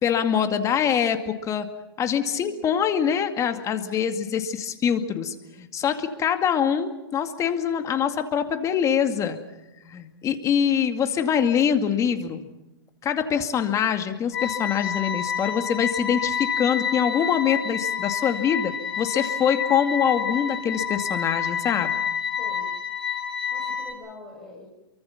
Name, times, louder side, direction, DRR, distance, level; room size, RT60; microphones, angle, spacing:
voice 1, 0.0-1.7 2.0-9.4 9.8-12.4 13.0-22.0, left 8 dB, 25° left, 7 dB, 2.2 m, -24 dB
voice 2, 2.1-2.7 22.4-22.8 23.5-24.7, left 2 dB, ahead, -5 dB, 5.8 m, -44 dB
sound 1, 14.3-23.9, left 7 dB, 60° left, 4.8 m, -29 dB
28.5 x 24.0 x 5.9 m, 0.96 s
hypercardioid pair, 135°, 13 cm